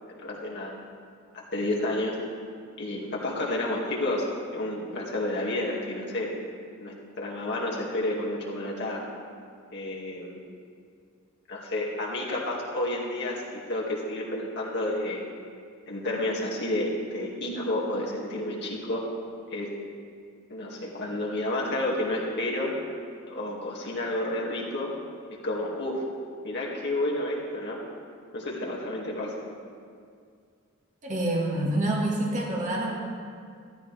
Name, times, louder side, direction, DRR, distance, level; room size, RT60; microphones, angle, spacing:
voice 1, 0.1-0.8 1.3-2.2 2.8-6.3 6.8-9.1 9.7-10.4 11.5-13.4 13.7-15.2 15.9-19.1 19.5-19.7 20.5-22.7 23.3-24.9 25.4-26.0 26.4-27.8 28.3-29.3, left 1 dB, 55° left, -3 dB, 2.2 m, -30 dB
voice 2, 31.0-33.0, right 1 dB, 35° right, -3 dB, 2.0 m, -27 dB
14.5 x 13.5 x 3.4 m, 2.2 s
head